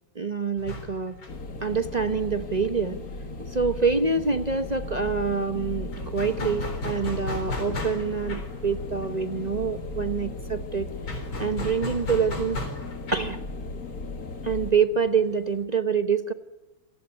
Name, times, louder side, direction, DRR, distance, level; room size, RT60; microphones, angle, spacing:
voice 1, 0.1-1.2 1.6-3.0 3.4-12.6 13.1-13.4 14.4-16.3, right 5 dB, 35° right, 10 dB, 0.6 m, -26 dB
sound 1, 0.6-4.0 4.2-4.4 4.6-15.6, left 1 dB, 75° left, 4.9 m, -37 dB
sound 2, 1.3-14.7, left 3 dB, 45° left, 2.4 m, -37 dB
27.0 x 18.0 x 9.9 m, 1.1 s
omnidirectional pair, 2.2 m